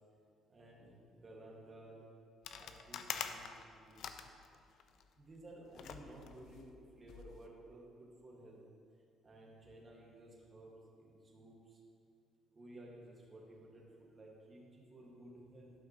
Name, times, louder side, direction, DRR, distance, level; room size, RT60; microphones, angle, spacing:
voice 1, 0.5-2.1 2.5-3.5 3.7-4.0 5.2-8.6 9.2-11.8 12.5-15.7, right 1 dB, 30° right, -3 dB, 1.7 m, -55 dB
sound 1, 2.4-5.1 5.7-7.4, left 7 dB, 70° left, 0.4 m, -46 dB
11.5 x 5.8 x 2.9 m, 2.4 s
cardioid pair, 90°, 0 cm